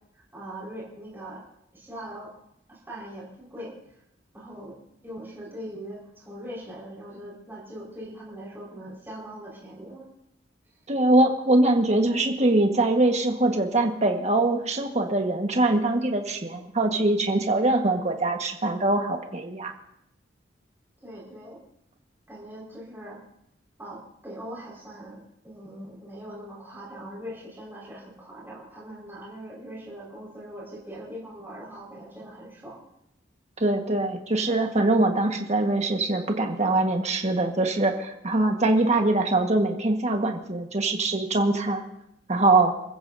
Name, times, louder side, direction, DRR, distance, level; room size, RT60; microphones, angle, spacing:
voice 1, 0.1-1.4 1.7-2.3 2.7-4.0 4.3-4.8 5.0-10.0 21.0-21.6 22.3-23.2 23.8-32.8, right 1 dB, 10° right, -5 dB, 4.9 m, -41 dB
voice 2, 10.9-19.7 33.6-41.8 42.3-42.7, right 2 dB, 40° right, 4 dB, 1.5 m, -23 dB
29.0 x 15.0 x 2.7 m, 0.80 s
head